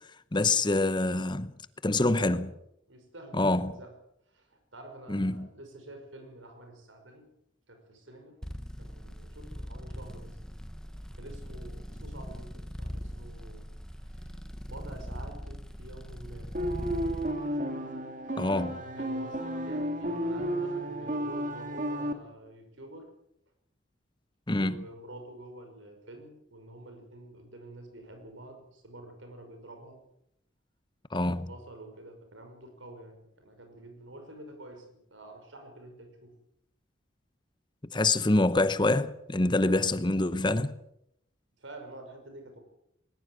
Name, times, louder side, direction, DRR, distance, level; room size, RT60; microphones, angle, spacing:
voice 1, 0.3-1.5 1.8-2.4 3.3-3.7 5.1-5.5 18.4-18.8 24.5-24.8 31.1-31.5 37.9-40.7, left 2 dB, 25° left, 0.8 m, -26 dB
voice 2, 2.0-2.4 2.9-3.9 4.3-7.3 7.7-8.4 8.8-10.4 11.2-13.6 14.1-14.4 14.7-16.5 18.2-23.1 24.5-30.0 31.2-36.3 41.6-42.6, right 1 dB, 80° right, 5.8 m, -48 dB
sound 1, 8.4-17.3, equal, 5° left, 1.2 m, -41 dB
sound 2, 16.5-22.1, right 1 dB, 40° right, 2.3 m, -32 dB
20.0 x 19.5 x 8.0 m
head